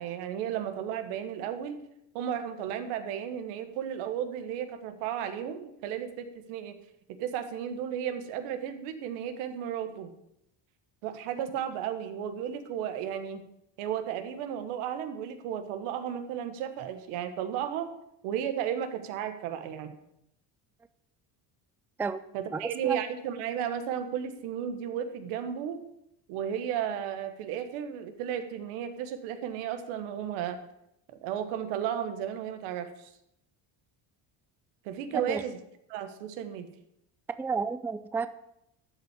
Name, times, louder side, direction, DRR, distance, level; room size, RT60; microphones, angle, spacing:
voice 1, 0.0-1.8 2.1-6.8 7.2-10.1 11.0-13.4 13.8-17.9 18.2-19.9 22.3-25.8 26.3-30.6 31.2-33.1 34.8-35.6 35.9-36.7, right 9 dB, 85° right, 1.5 m, -34 dB
voice 2, 22.5-23.0 35.1-35.4 37.4-38.3, right 5 dB, 5° right, 0.4 m, -31 dB
13.0 x 4.3 x 8.3 m
supercardioid pair, 95°, 49 cm